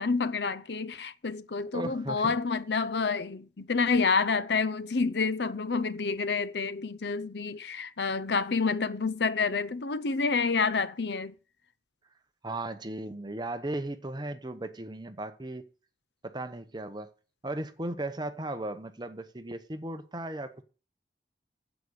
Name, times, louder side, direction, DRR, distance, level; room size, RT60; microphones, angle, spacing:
voice 1, 0.0-11.3, left 4 dB, 70° left, 0.7 m, -28 dB
voice 2, 1.7-2.3 12.4-15.7 16.2-17.1 17.4-20.6, right 1 dB, 25° right, 1.0 m, -36 dB
9.2 x 8.3 x 6.5 m
head